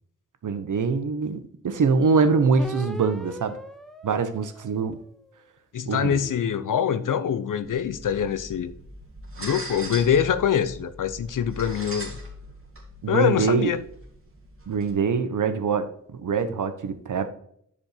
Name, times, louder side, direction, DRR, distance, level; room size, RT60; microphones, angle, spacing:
voice 1, 0.4-3.6 4.0-5.0 5.9-6.2 13.0-13.7 14.7-17.3, right 5 dB, 80° right, 1.1 m, -24 dB
sound 1, 2.6-5.3 5.9-8.3, equal, ahead, 0.8 m, -41 dB
voice 2, 5.7-8.7 9.4-12.1 13.1-13.8, left 8 dB, 90° left, 0.8 m, -24 dB
sound 2, 7.6-14.9, right 1 dB, 45° right, 2.5 m, -40 dB
9.8 x 5.2 x 4.3 m
wide cardioid pair, 135°, 31 cm